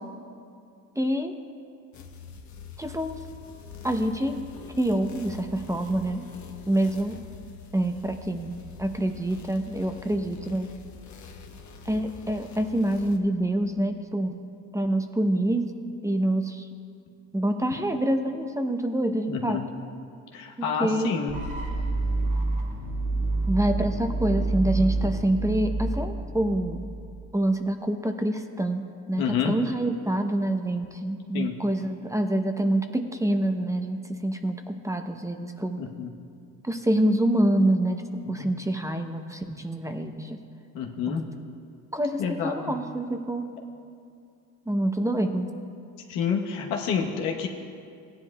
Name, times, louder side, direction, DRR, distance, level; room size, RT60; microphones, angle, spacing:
voice 1, 1.0-1.4 2.8-3.2 3.8-4.4 4.8-6.3 6.7-7.2 7.7-10.7 11.8-14.4 14.7-15.7 16.0-16.7 17.3-19.6 20.6-21.1 23.5-26.9 27.3-35.8 36.6-38.0 38.3-40.4 41.1-41.3 41.9-43.5 44.7-45.5, right 1 dB, 10° right, 6 dB, 0.7 m, -26 dB
sound 1, 1.9-13.2, left 5 dB, 50° left, 1.2 m, -45 dB
voice 2, 19.3-19.6 20.3-21.4 29.2-29.5 31.3-31.5 35.8-36.1 38.4-38.5 40.7-41.2 42.2-42.8 46.1-47.5, left 7 dB, 85° left, 1 dB, 1.2 m, -28 dB
sound 2, 21.3-27.2, right 2 dB, 60° right, 1.7 m, -28 dB
16.5 x 10.0 x 2.3 m, 2.4 s
supercardioid pair, 70°, 36 cm